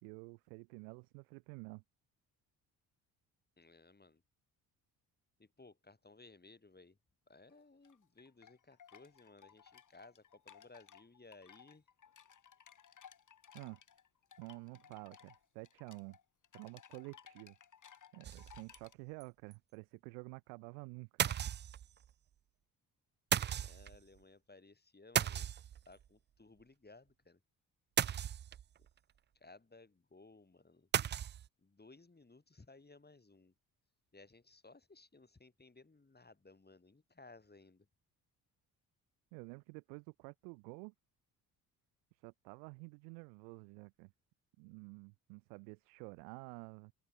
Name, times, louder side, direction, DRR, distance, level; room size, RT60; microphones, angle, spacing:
voice 1, 0.0-1.8 13.5-13.8 14.4-16.2 16.5-17.5 18.1-21.1 39.3-40.9 42.1-44.1 44.6-46.9, right 40 dB or more, 80° right, 1.3 m, -50 dB
voice 2, 3.6-4.2 5.4-7.0 7.3-11.8 23.4-25.5 25.9-27.4 28.8-28.9 29.3-30.9 31.6-33.5 34.1-37.9, left 3 dB, 20° left, 4.9 m, -60 dB
sound 1, 7.5-18.9, left 8 dB, 45° left, 2.1 m, -60 dB
sound 2, 18.2-18.8 19.2-19.3 19.5-19.6 21.2-22.1 23.3-24.0 25.2-26.0 28.0-28.8 30.9-31.5, right 10 dB, 25° right, 0.4 m, -35 dB
open air
hypercardioid pair, 50°, 43 cm